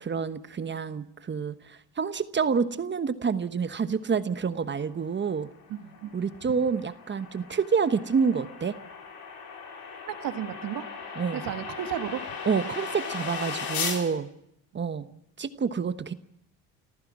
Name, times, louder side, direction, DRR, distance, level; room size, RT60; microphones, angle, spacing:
voice 1, 0.0-5.5 6.1-8.7 11.2-11.4 12.4-14.3 14.7-15.1 15.4-16.1, right 6 dB, 30° right, 12 dB, 1.2 m, -28 dB
sound 1, 5.4-14.0, left 5 dB, 70° left, 4.7 m, -37 dB
voice 2, 5.7-6.3 10.1-10.9 11.3-12.2, right 11 dB, 65° right, 9 dB, 1.7 m, -33 dB
30.0 x 14.5 x 6.2 m, 0.75 s
supercardioid pair, 80°, 37 cm